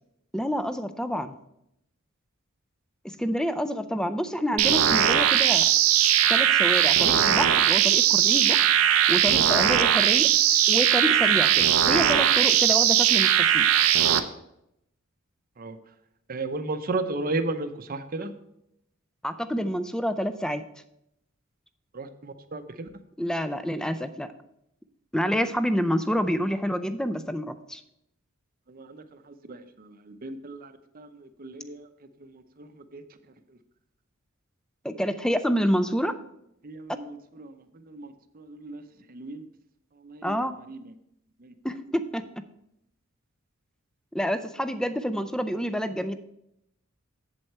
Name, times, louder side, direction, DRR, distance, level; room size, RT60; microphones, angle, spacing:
voice 1, 0.3-1.3 3.0-5.7 6.3-8.6 9.1-10.3 10.7-13.7 19.2-20.6 23.2-24.3 25.1-27.8 34.8-36.1 40.2-40.6 41.6-42.2 44.1-46.2, equal, 5° left, 11 dB, 0.4 m, -28 dB
sound 1, 4.6-14.2, right 10 dB, 80° right, 0.6 m, -20 dB
voice 2, 16.3-18.3 21.9-22.9 28.7-31.9 32.2-33.0 33.5-33.6 36.6-38.8 39.1-39.5 40.0-40.3 40.7-40.9 41.4-41.5, right 2 dB, 45° right, 9 dB, 0.7 m, -35 dB
7.8 x 7.7 x 4.3 m, 0.79 s
head